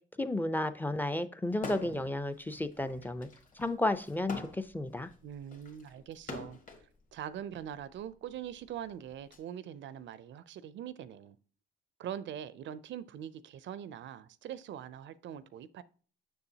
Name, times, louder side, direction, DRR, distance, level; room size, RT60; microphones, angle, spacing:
voice 1, 0.2-3.3 3.6-5.1, left 1 dB, 10° left, 0.5 m, -32 dB
sound 1, 1.5-2.1 2.5-6.9 7.7-9.4, left 3 dB, 40° left, 1.8 m, -45 dB
voice 2, 5.2-6.6 7.1-11.4 12.0-15.8, right 10 dB, 70° right, 0.5 m, -43 dB
6.9 x 6.4 x 2.8 m
cardioid pair, 90°, 20 cm